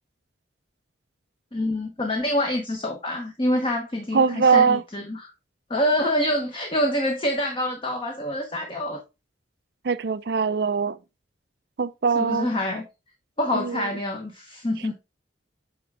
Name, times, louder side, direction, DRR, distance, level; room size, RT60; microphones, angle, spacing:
voice 1, 1.5-5.3 5.7-9.0 12.1-12.9 13.4-14.9, left 1 dB, 30° left, 1.0 m, -26 dB
voice 2, 4.1-4.8 9.8-11.0 11.8-12.5 13.5-13.8, right 5 dB, 60° right, 0.5 m, -21 dB
8.7 x 3.6 x 3.5 m
head